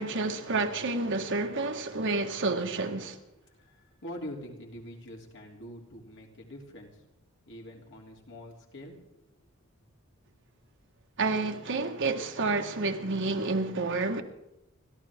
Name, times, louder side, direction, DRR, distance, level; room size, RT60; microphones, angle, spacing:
voice 1, 0.0-3.2 11.2-14.2, right 3 dB, 60° right, 1.5 m, -29 dB
voice 2, 3.5-6.9 7.5-8.9, equal, 60° left, 3.2 m, -44 dB
29.5 x 13.0 x 3.6 m
head